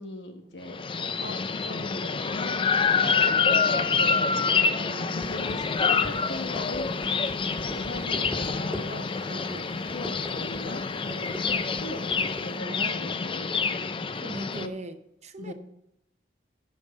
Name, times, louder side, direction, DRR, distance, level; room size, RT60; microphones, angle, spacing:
voice 1, 0.0-12.0 12.4-14.0 14.6-14.7 15.4-15.5, left 2 dB, 85° left, 5 dB, 1.2 m, -40 dB
sound 1, 0.7-14.7, left 5 dB, 30° left, 0.5 m, -27 dB
voice 2, 4.7-5.4 9.3-9.7 11.3-11.4 12.6-13.2 14.1-15.5, right 2 dB, 40° right, 9 dB, 0.8 m, -40 dB
sound 2, 5.1-12.5, equal, ahead, 2.1 m, -40 dB
11.5 x 5.4 x 6.7 m, 0.81 s
head